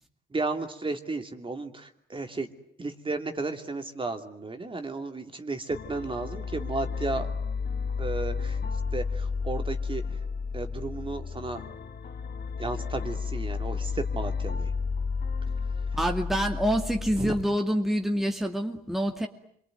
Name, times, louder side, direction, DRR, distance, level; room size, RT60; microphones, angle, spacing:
voice 1, 0.3-2.5 2.8-7.3 8.0-8.6 8.9-10.0 10.5-11.6 12.6-14.7 17.2-17.3, right 3 dB, 25° right, 6 dB, 2.8 m, -33 dB
sound 1, 5.7-17.4, left 5 dB, 50° left, 2.0 m, -32 dB
voice 2, 16.0-19.3, equal, ahead, 3 dB, 2.4 m, -26 dB
26.5 x 23.0 x 9.3 m, 0.71 s
cardioid pair, 90°, 20 cm